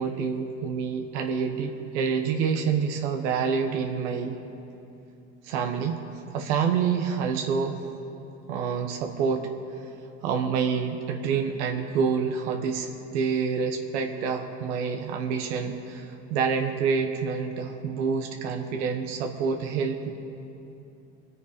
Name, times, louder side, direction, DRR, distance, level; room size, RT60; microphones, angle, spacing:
voice 1, 0.0-4.4 5.4-6.1 6.3-7.8 8.5-9.5 10.2-20.1, right 6 dB, 90° right, 4 dB, 1.3 m, -27 dB
25.0 x 9.3 x 5.1 m, 2.8 s
supercardioid pair, 95°, 33 cm